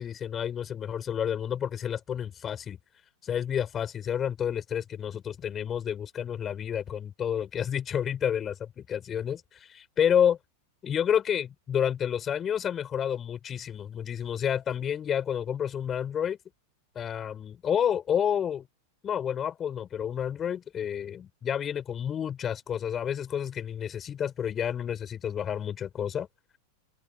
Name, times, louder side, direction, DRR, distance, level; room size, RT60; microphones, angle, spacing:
voice 1, 0.0-2.8 3.2-10.4 10.8-16.4 17.0-18.7 19.0-26.3, left 9 dB, 25° left, 5.5 m, -30 dB
open air
figure-of-eight pair, 90°, 0 cm